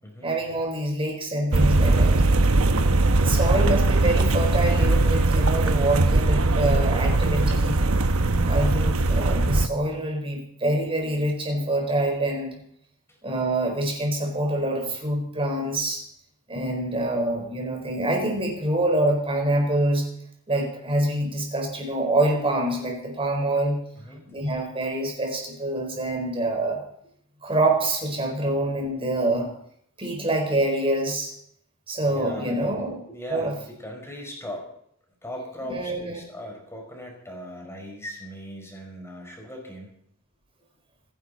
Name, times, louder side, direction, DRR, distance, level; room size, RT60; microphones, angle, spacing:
voice 1, 0.2-2.1 3.2-7.8 8.4-12.6 13.2-16.0 16.5-20.1 20.5-23.8 24.3-26.8 27.4-29.5 30.0-31.3 31.9-33.0 33.3-33.5 35.7-36.2, right 1 dB, 25° right, 2 dB, 4.6 m, -26 dB
sound 1, 1.5-9.7, right 2 dB, 85° right, 1.0 m, -20 dB
voice 2, 3.2-3.8 13.1-13.2 24.0-24.2 32.0-32.7 33.1-34.7 35.2-39.9, equal, 15° left, 1 dB, 5.2 m, -39 dB
27.0 x 11.0 x 4.2 m, 0.68 s
head